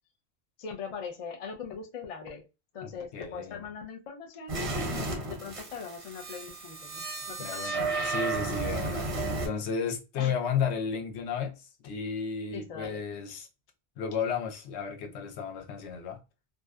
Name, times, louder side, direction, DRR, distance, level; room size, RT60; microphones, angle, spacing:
voice 1, 0.6-2.4 2.7-7.7 10.2-10.3 12.5-13.0, left 6 dB, 50° left, 0.4 m, -41 dB
voice 2, 2.8-3.6 7.4-13.5 14.0-16.2, left 6 dB, 80° left, 0.9 m, -33 dB
sound 1, 4.5-9.5, right 3 dB, 40° right, 0.6 m, -33 dB
2.7 x 2.1 x 2.2 m
omnidirectional pair, 1.1 m